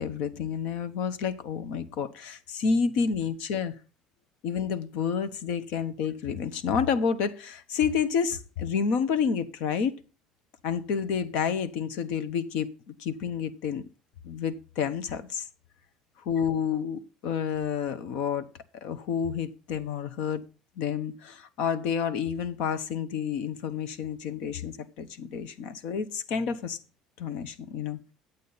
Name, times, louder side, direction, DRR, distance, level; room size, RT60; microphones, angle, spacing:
voice 1, 0.0-3.7 4.4-9.9 10.6-12.7 13.0-13.8 14.2-15.5 16.2-18.5 18.8-20.4 20.8-26.8 27.2-28.0, left 6 dB, 65° left, 1.2 m, -29 dB
11.5 x 8.4 x 4.2 m
cardioid pair, 165°, 2 cm